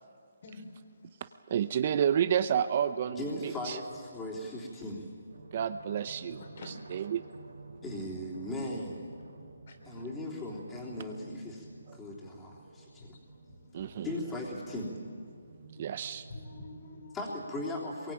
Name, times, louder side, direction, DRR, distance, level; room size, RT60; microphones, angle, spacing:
voice 1, 0.4-1.3 6.4-7.1 9.7-10.1 13.0-14.2 15.7-17.4, left 2 dB, 45° left, 4 dB, 3.4 m, -50 dB
voice 2, 1.5-3.8 5.5-6.4 6.9-7.3 13.7-14.1 15.8-16.2, right 9 dB, 35° right, 13 dB, 0.6 m, -30 dB
voice 3, 3.2-5.1 7.8-9.1 9.9-13.1 14.0-15.0 17.1-18.1, left 1 dB, 10° left, -3 dB, 3.5 m, -38 dB
sound 1, 5.3-17.1, right 3 dB, 75° right, 4.0 m, -52 dB
22.0 x 22.0 x 9.0 m, 2.3 s
hypercardioid pair, 165°, 0 cm